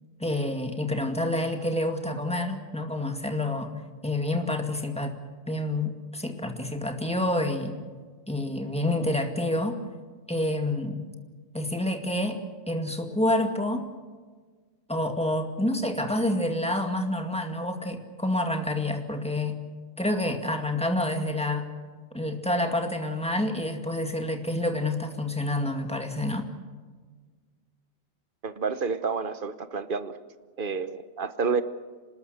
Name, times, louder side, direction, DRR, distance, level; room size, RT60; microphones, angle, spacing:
voice 1, 0.2-3.7 4.0-5.1 5.5-7.8 8.3-9.8 10.3-11.1 11.5-12.4 12.7-13.9 14.9-19.6 20.0-21.7 22.1-26.4, left 1 dB, 5° left, 4 dB, 2.0 m, -28 dB
voice 2, 28.4-30.1 30.6-31.6, right 5 dB, 40° right, 12 dB, 1.1 m, -29 dB
25.5 x 20.0 x 6.6 m, 1.5 s
omnidirectional pair, 1.4 m